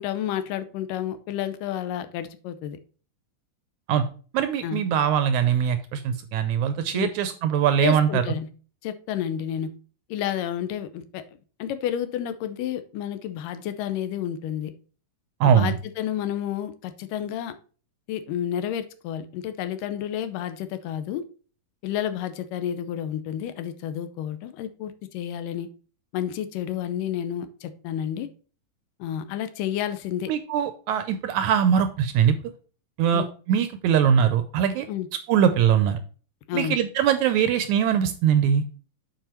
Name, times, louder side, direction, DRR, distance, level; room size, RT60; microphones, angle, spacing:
voice 1, 0.0-2.8 4.6-4.9 6.9-7.1 7.8-8.5 8.8-9.7 10.1-11.2 11.6-14.7 15.4-17.6 18.1-21.2 21.8-25.7 26.1-28.3 29.0-30.3 33.1-33.3 34.9-35.1 36.5-36.8, left 10 dB, 85° left, 2.4 m, -30 dB
voice 2, 4.3-8.2 15.4-15.7 30.3-32.4 33.0-34.9 35.3-36.0 36.5-38.6, right 8 dB, 80° right, 1.8 m, -22 dB
7.7 x 4.9 x 4.4 m
omnidirectional pair, 3.8 m